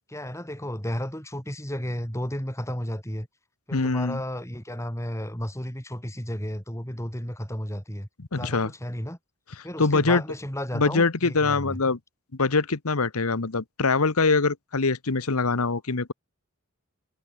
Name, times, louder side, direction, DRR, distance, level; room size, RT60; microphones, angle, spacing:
voice 1, 0.1-3.3 3.7-9.2 9.6-11.8, equal, 15° left, 5.0 m, -33 dB
voice 2, 3.7-4.2 8.3-8.7 9.8-10.2 10.7-12.0 12.4-16.1, left 3 dB, 80° left, 1.2 m, -23 dB
head